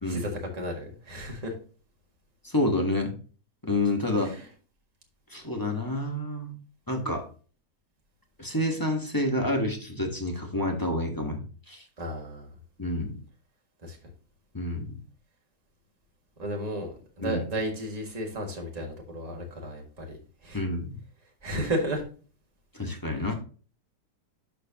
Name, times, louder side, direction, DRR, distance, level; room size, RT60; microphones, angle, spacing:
voice 1, 0.1-1.5 4.2-4.5 12.0-12.5 13.8-14.0 16.4-20.2 20.4-20.6 21.4-22.0 23.3-23.4, equal, 25° right, 1 dB, 1.7 m, -33 dB
voice 2, 2.4-3.1 3.6-4.3 5.3-6.5 6.9-7.3 8.4-11.8 12.8-13.2 14.5-14.9 17.2-17.4 20.5-21.0 22.7-23.3, left 1 dB, 15° left, 2 dB, 1.0 m, -28 dB
12.0 x 4.5 x 2.8 m, 0.39 s
omnidirectional pair, 1.9 m